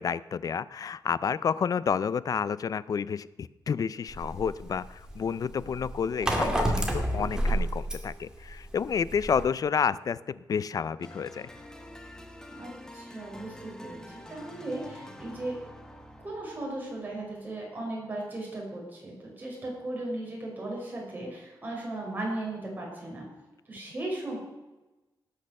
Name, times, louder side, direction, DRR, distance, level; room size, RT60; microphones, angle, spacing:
voice 1, 0.0-11.5, left 6 dB, 55° left, 17 dB, 0.4 m, -30 dB
sound 1, 4.1-9.4, right 1 dB, 10° right, 2.2 m, -30 dB
sound 2, 11.0-17.8, left 1 dB, 10° left, 1.3 m, -47 dB
voice 2, 12.5-14.0 14.3-15.6 16.2-23.3 23.7-24.4, right 2 dB, 25° right, -3 dB, 5.5 m, -36 dB
18.0 x 6.6 x 6.5 m, 1.1 s
wide cardioid pair, 135°, 8 cm